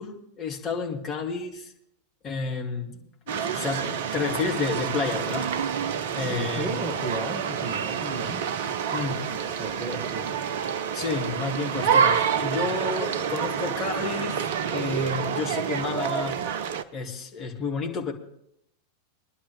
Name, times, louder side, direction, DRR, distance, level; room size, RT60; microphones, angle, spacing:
voice 1, 0.0-1.7 2.2-5.6 6.1-6.7 8.9-9.6 10.9-16.4 16.9-18.1, left 4 dB, 25° left, 0 dB, 2.3 m, -31 dB
sound 1, 3.3-16.8, right 7 dB, 55° right, 0.7 m, -28 dB
voice 2, 6.2-8.5 9.3-10.3, right 2 dB, 15° right, 0 dB, 1.8 m, -35 dB
22.0 x 11.5 x 3.3 m, 0.75 s
figure-of-eight pair, 90°, 0 cm